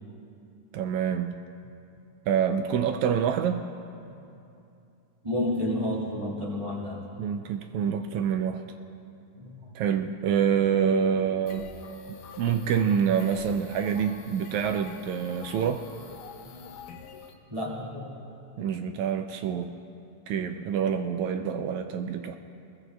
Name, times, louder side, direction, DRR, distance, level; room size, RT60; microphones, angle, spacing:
voice 1, 0.7-1.4 2.3-3.7 7.2-8.6 9.8-11.7 12.4-15.8 18.6-19.7 20.3-22.4, right 8 dB, 85° right, 6 dB, 1.7 m, -26 dB
voice 2, 5.2-7.1 9.4-9.7 16.4-16.7 17.5-18.3, left 1 dB, 30° right, -5 dB, 0.6 m, -31 dB
sound 1, 11.5-17.3, left 5 dB, 80° left, 2.7 m, -46 dB
21.5 x 21.0 x 2.3 m, 2.7 s
omnidirectional pair, 3.8 m